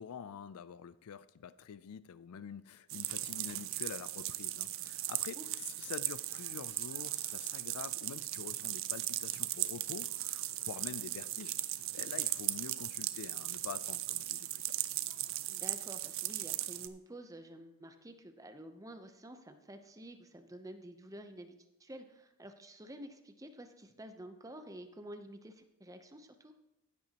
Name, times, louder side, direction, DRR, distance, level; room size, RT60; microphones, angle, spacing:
voice 1, 0.0-5.4 5.8-11.6 11.9-14.6, left 7 dB, 80° left, 0.4 m, -46 dB
sound 1, 2.9-16.9, right 15 dB, 60° right, 0.5 m, -37 dB
voice 2, 15.5-26.5, right 1 dB, 15° right, 0.7 m, -50 dB
15.5 x 8.8 x 2.9 m
head